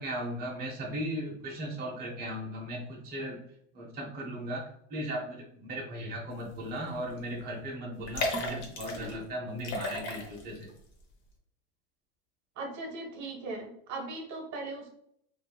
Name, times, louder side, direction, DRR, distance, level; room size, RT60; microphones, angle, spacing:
voice 1, 0.0-3.4 3.7-4.6 4.9-10.7, equal, 25° right, -3 dB, 0.8 m, -37 dB
sound 1, 6.7-6.9 7.2-7.3 8.0-9.2 9.6-10.6 11.0-11.1, left 2 dB, 45° left, 0.8 m, -34 dB
voice 2, 12.6-14.9, right 2 dB, 45° right, 1 dB, 1.0 m, -38 dB
3.0 x 2.6 x 2.3 m, 0.71 s
supercardioid pair, 105°, 38 cm